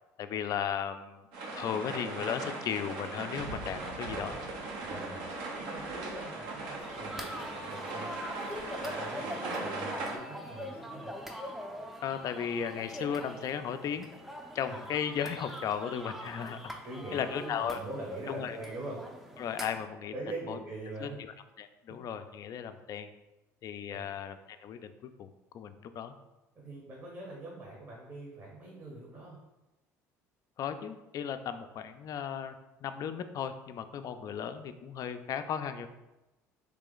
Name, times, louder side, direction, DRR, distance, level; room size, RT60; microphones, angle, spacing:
voice 1, 0.2-1.3 1.5-4.4 12.0-14.1 14.5-16.7 17.1-17.8 18.3-18.6 19.4-20.1 20.5-20.6 21.0-23.1 23.6-24.9 25.2-25.3 25.5-26.2 30.6-32.6 32.8-35.9, left 8 dB, 50° left, 9 dB, 0.3 m, -35 dB
sound 1, 1.3-10.2, right 2 dB, 70° right, 0.9 m, -39 dB
Thunder / Rain, 3.3-9.1, right 3 dB, 85° right, 0.4 m, -50 dB
voice 2, 4.8-5.3 5.6-8.1 8.5-11.1 14.7-14.8 16.8-19.0 20.1-21.2 23.9-24.1 26.5-29.4, right 2 dB, 40° right, -4 dB, 1.1 m, -43 dB
sound 2, 6.8-19.9, equal, 5° right, 0.5 m, -43 dB
3.2 x 2.9 x 3.9 m, 1.0 s
hypercardioid pair, 70°, 8 cm